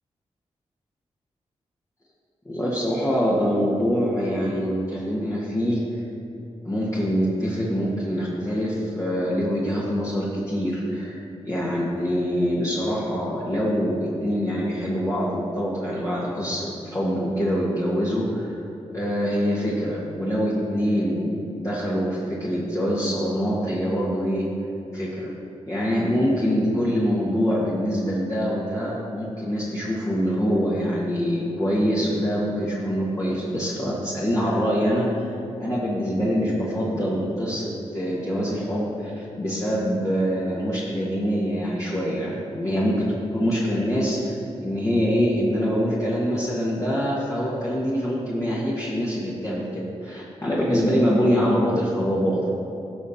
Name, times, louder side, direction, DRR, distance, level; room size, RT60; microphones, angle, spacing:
voice 1, 2.5-5.8 6.7-18.6 18.9-24.5 24.9-25.3 25.7-35.1 35.6-52.5, equal, 30° left, -7 dB, 1.8 m, -24 dB
15.5 x 5.6 x 4.4 m, 2.7 s
cardioid pair, 65°, 12 cm